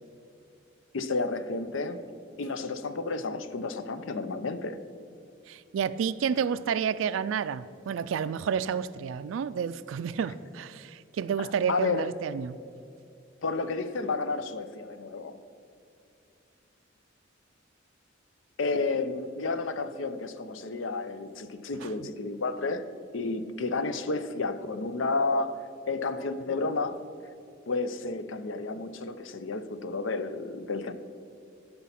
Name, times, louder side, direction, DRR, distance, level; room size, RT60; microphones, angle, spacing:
voice 1, 0.9-2.0 2.4-4.8 11.4-12.1 13.4-15.4 18.6-22.8 23.1-27.1 27.7-30.9, left 3 dB, 90° left, 12 dB, 0.6 m, -31 dB
voice 2, 5.5-12.6 21.8-21.9, right 7 dB, 85° right, 13 dB, 0.3 m, -30 dB
12.0 x 5.6 x 5.8 m, 2.5 s
head